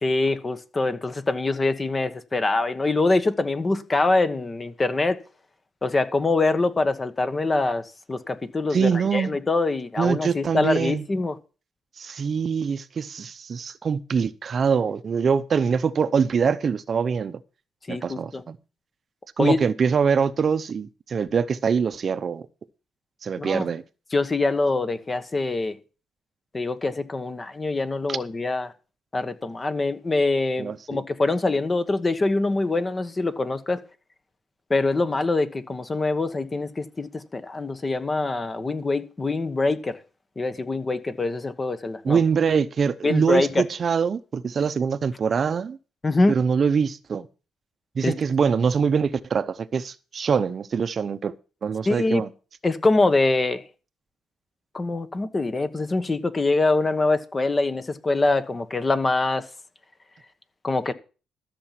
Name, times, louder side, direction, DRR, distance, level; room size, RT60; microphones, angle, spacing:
voice 1, 0.0-5.2 5.8-11.4 17.9-18.4 19.4-19.6 23.4-23.7 24.1-25.8 26.5-28.7 29.1-33.8 34.7-40.0 40.4-42.2 43.0-43.6 46.0-46.3 48.0-48.1 51.9-52.2 52.6-53.6 54.7-59.5 60.6-60.9, left 3 dB, 25° left, 1.2 m, -24 dB
voice 2, 8.7-9.4 10.0-11.0 12.0-17.4 17.9-18.6 19.4-22.5 23.2-23.8 28.1-28.2 30.6-31.0 42.0-45.8 46.3-47.3 48.0-51.3 51.6-52.3, right 6 dB, 45° right, 0.7 m, -24 dB
13.5 x 7.0 x 5.8 m
cardioid pair, 90°, 0 cm